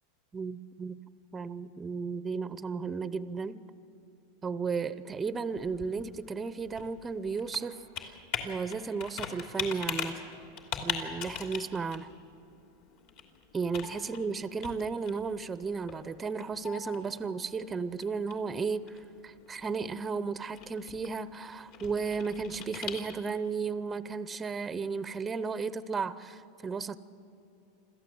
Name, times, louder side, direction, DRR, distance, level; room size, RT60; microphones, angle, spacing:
voice 1, 0.3-1.0 1.3-3.6 4.4-8.1 8.4-10.3 10.8-12.1 13.5-27.0, right 5 dB, 15° right, 15 dB, 0.6 m, -34 dB
Computer keyboard, 5.2-23.5, left 7 dB, 60° left, 2.8 m, -42 dB
27.0 x 14.0 x 7.7 m, 2.9 s
supercardioid pair, 135°, 0 cm